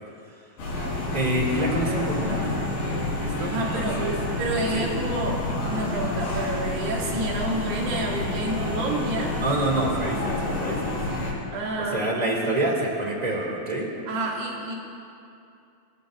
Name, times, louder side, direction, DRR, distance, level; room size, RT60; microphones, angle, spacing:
sound 1, 0.6-11.3, left 2 dB, 65° left, 6.4 m, -29 dB
voice 1, 1.1-2.6 3.2-4.1 4.7-4.9 9.4-11.0 11.8-13.9, right 1 dB, 15° right, -3 dB, 1.6 m, -27 dB
voice 2, 3.5-4.0 4.4-9.4 11.5-12.3 14.1-14.7, right 2 dB, 90° right, -4 dB, 4.5 m, -29 dB
27.5 x 15.5 x 2.6 m, 2.6 s
omnidirectional pair, 4.6 m